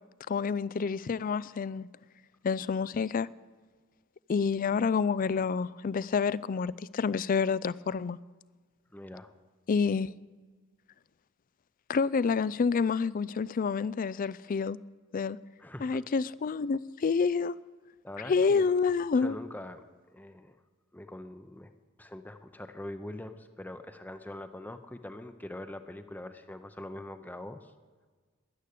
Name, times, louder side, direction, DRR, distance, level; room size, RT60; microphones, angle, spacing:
voice 1, 0.3-1.9 2.4-3.3 4.3-8.2 9.7-10.1 11.9-14.8 15.1-15.4 15.8-17.6 18.3-19.4, left 5 dB, 40° left, 0.3 m, -28 dB
voice 2, 8.9-9.3 15.6-16.0 18.0-18.7 19.2-20.6 20.9-21.7 22.0-27.7, left 1 dB, 10° left, 0.7 m, -43 dB
13.5 x 11.0 x 8.4 m
head